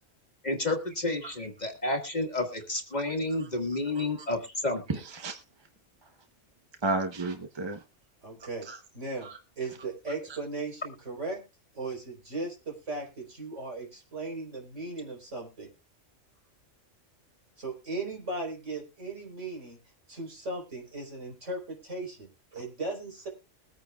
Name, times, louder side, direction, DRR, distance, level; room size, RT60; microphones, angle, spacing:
voice 1, 0.4-4.8, left 2 dB, 35° left, 3 dB, 1.8 m, -30 dB
voice 2, 3.9-4.3 4.9-5.4 6.0-6.1 6.8-7.8 8.6-8.8 9.2-9.4, right 2 dB, 25° right, 6 dB, 0.9 m, -33 dB
voice 3, 8.2-8.7 8.9-9.3 9.6-11.4 11.7-15.7 17.6-19.8 20.1-23.3, right 2 dB, 70° right, 0 dB, 4.4 m, -37 dB
22.0 x 9.0 x 2.3 m, 0.29 s
omnidirectional pair, 1.3 m